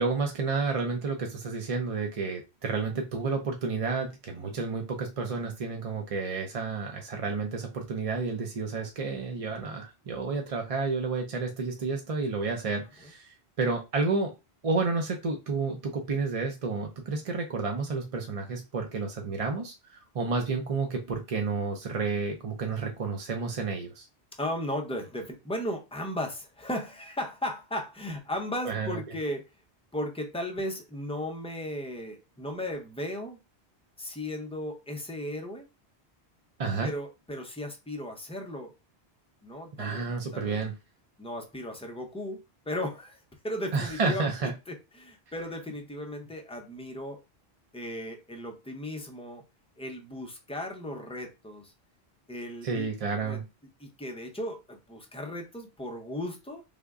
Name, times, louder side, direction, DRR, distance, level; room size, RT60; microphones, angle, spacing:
voice 1, 0.0-14.3 14.6-24.1 28.6-29.0 36.6-36.9 39.8-40.8 43.7-44.5 52.6-53.4, right 4 dB, 45° right, 0.5 m, -30 dB
voice 2, 24.4-29.4 29.9-33.4 34.0-35.7 36.8-38.7 39.4-40.7 41.2-47.2 47.7-49.4 49.8-51.7 52.3-52.9 53.2-53.4 53.8-56.6, left 1 dB, 5° left, 0.5 m, -36 dB
3.5 x 2.1 x 3.5 m
omnidirectional pair, 1.1 m